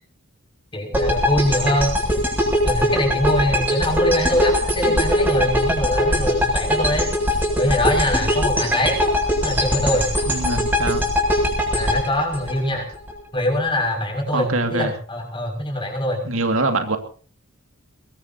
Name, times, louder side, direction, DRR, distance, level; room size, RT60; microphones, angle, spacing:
voice 1, 0.7-2.2 2.6-7.1 7.6-9.0 9.4-10.0 11.7-12.9 13.3-16.2, left 1 dB, 25° left, 2 dB, 6.3 m, -23 dB
sound 1, 0.9-13.1, left 1 dB, 10° right, 7.6 m, -21 dB
voice 2, 10.3-11.0 14.3-14.9 16.3-17.0, right 2 dB, 70° right, 6 dB, 2.3 m, -23 dB
22.5 x 22.0 x 2.9 m, 0.40 s
head